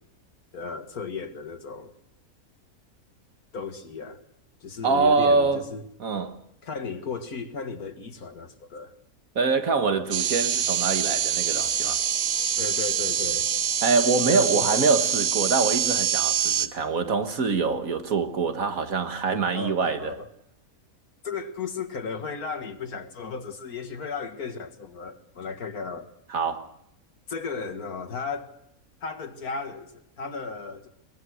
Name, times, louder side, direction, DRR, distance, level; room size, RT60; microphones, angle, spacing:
voice 1, 0.5-1.9 3.5-4.2 4.6-5.8 6.6-8.9 12.6-13.5 14.2-15.0 19.5-20.3 21.2-26.1 27.3-28.6 29.0-30.9, left 5 dB, 85° left, 2.3 m, -35 dB
voice 2, 4.8-5.6 6.0-6.4 9.4-12.0 13.8-20.2 26.3-26.7, right 4 dB, 70° right, 2.0 m, -24 dB
sound 1, 10.1-16.7, right 8 dB, 85° right, 1.6 m, -25 dB
23.0 x 21.0 x 6.4 m
omnidirectional pair, 1.5 m